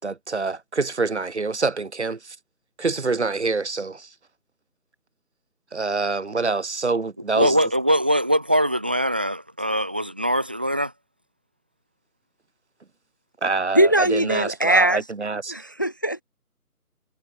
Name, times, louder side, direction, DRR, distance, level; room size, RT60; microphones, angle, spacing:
voice 1, 0.0-2.4 2.8-4.1 5.7-7.6 13.4-15.5, right 3 dB, 45° right, 6.5 m, -26 dB
voice 2, 7.3-10.9, equal, 5° right, 1.3 m, -22 dB
voice 3, 13.7-15.0 15.5-16.2, right 1 dB, 15° left, 1.2 m, -20 dB
figure-of-eight pair, 165°, 46 cm